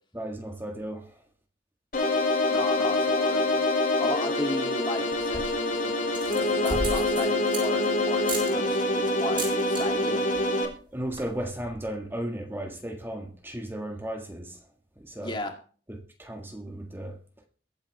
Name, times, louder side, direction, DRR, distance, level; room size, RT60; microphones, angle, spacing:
voice 1, 0.1-1.2 10.9-14.6 15.0-15.4 15.9-17.2, right 1 dB, 15° right, 1.6 m, -35 dB
sound 1, 1.9-10.6, left 2 dB, 50° left, 3.3 m, -25 dB
voice 2, 2.5-3.6 4.0-10.2 15.2-15.6, left 2 dB, 30° left, 2.3 m, -35 dB
sound 2, 5.1-5.6 6.1-7.9 8.2-8.5 9.2-9.8 10.1-10.4 10.7-10.8 11.0-11.4, right 2 dB, 30° right, 7.1 m, -34 dB
22.5 x 8.6 x 3.3 m
head